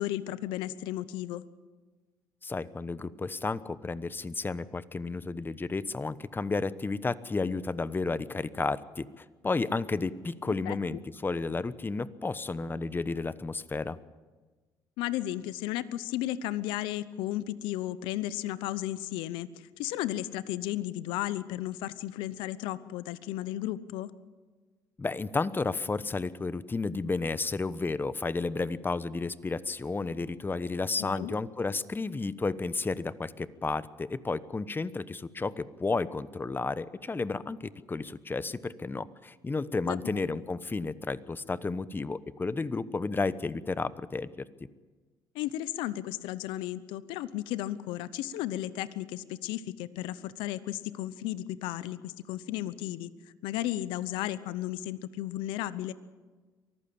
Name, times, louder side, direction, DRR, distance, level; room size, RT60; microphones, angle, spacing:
voice 1, 0.0-1.4 10.5-10.8 15.0-24.1 31.0-31.3 39.9-40.3 45.3-53.1 53.4-55.9, left 14 dB, 85° left, 16 dB, 0.8 m, -34 dB
voice 2, 2.4-14.0 25.0-44.5, left 3 dB, 25° left, 16 dB, 1.1 m, -32 dB
23.5 x 15.0 x 8.7 m, 1.3 s
supercardioid pair, 65°, 8 cm